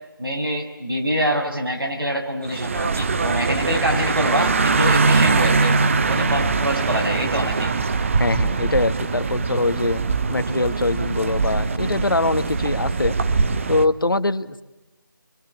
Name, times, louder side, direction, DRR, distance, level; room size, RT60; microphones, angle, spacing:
voice 1, 0.2-5.7 6.1-7.7, equal, 80° right, 2 dB, 7.0 m, -25 dB
sound 1, 2.5-13.9, right 4 dB, 35° right, 1.1 m, -22 dB
voice 2, 8.2-10.0 10.3-13.1 13.7-14.6, left 2 dB, 70° left, 11 dB, 1.6 m, -22 dB
26.5 x 24.0 x 8.5 m, 1.1 s
figure-of-eight pair, 160°, 12 cm